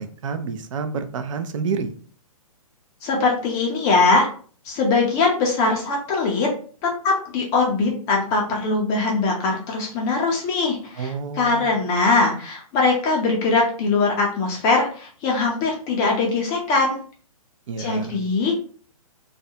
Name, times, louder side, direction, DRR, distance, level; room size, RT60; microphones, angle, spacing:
voice 1, 0.0-1.9 11.0-11.8 17.7-18.2, right 5 dB, 60° right, 8 dB, 0.5 m, -29 dB
voice 2, 3.0-4.3 4.7-6.5 6.8-17.0 17.8-18.5, left 3 dB, 20° left, -1 dB, 0.4 m, -21 dB
2.4 x 2.1 x 2.7 m, 0.43 s
hypercardioid pair, 150°, 19 cm